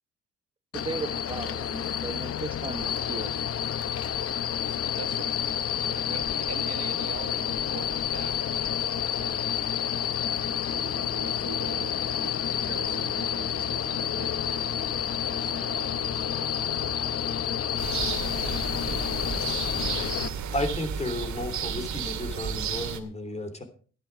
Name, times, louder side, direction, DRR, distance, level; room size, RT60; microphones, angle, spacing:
sound 1, 0.7-20.3, left 9 dB, 50° left, 0.9 m, -29 dB
voice 1, 0.7-3.3, right 3 dB, 15° right, 9 dB, 1.0 m, -36 dB
voice 2, 4.6-5.4 5.7-10.6 11.2-12.3 12.6-17.9 18.5-19.8, right 8 dB, 55° right, 11 dB, 1.3 m, -45 dB
sound 2, 10.7-18.7, right 7 dB, 85° right, 2.7 m, -46 dB
sound 3, 17.8-23.0, right 7 dB, 70° right, 2.2 m, -32 dB
voice 3, 20.5-23.6, left 1 dB, 20° left, 8 dB, 3.3 m, -33 dB
14.0 x 11.0 x 4.9 m, 0.42 s
cardioid pair, 90°, 30 cm